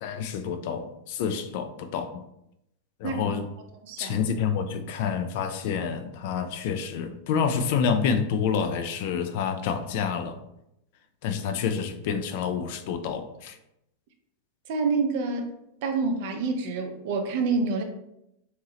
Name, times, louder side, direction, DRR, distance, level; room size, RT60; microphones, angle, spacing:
voice 1, 0.0-2.2 3.0-3.5 4.0-10.4 11.2-13.6, left 6 dB, 50° left, 8 dB, 0.3 m, -28 dB
voice 2, 3.8-4.3 14.7-15.5 15.8-17.8, right 4 dB, 50° right, 5 dB, 0.5 m, -27 dB
2.8 x 2.6 x 3.0 m, 0.82 s
figure-of-eight pair, 90°, 0 cm